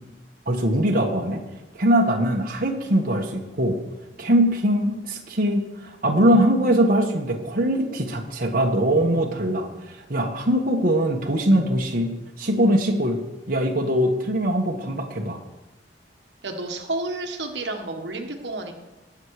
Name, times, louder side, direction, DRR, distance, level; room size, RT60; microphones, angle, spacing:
voice 1, 0.5-1.4 1.7-3.8 4.2-12.1 12.4-13.2 13.5-15.4, right 1 dB, 55° right, 1 dB, 1.3 m, -22 dB
voice 2, 16.4-18.7, right 2 dB, 75° right, 4 dB, 1.5 m, -30 dB
19.0 x 7.3 x 4.8 m, 1.0 s
head